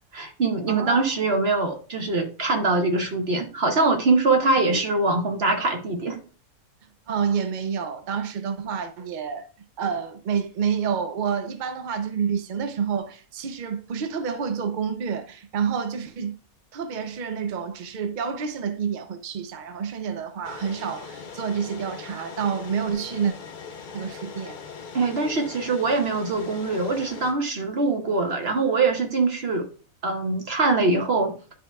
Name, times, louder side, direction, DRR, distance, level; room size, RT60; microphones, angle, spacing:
voice 1, 0.1-6.2 24.9-29.7 30.0-31.3, right 3 dB, 50° right, 0.9 m, -23 dB
voice 2, 0.7-1.0 4.7-4.8 7.1-9.5 9.8-16.4 16.7-23.3 23.9-24.6, right 6 dB, 85° right, 0.4 m, -28 dB
sound 1, 20.4-27.3, left 5 dB, 55° left, 0.5 m, -40 dB
10.0 x 4.4 x 2.2 m
omnidirectional pair, 1.6 m